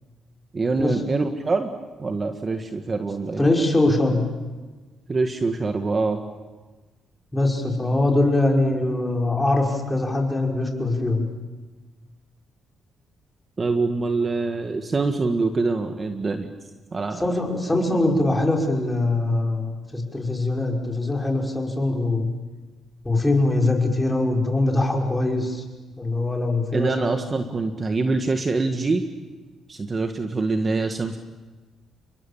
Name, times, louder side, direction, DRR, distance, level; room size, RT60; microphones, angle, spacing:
voice 1, 0.5-1.7 2.0-3.5 5.1-6.2 13.6-16.5 16.9-17.2 26.7-29.0 29.7-31.2, right 3 dB, 35° right, 6 dB, 1.7 m, -24 dB
voice 2, 3.4-4.3 7.3-11.3 17.2-22.3 23.0-25.6 26.0-27.2, left 2 dB, 10° left, 0 dB, 5.7 m, -22 dB
30.0 x 22.0 x 7.4 m, 1.3 s
cardioid pair, 90°, 0 cm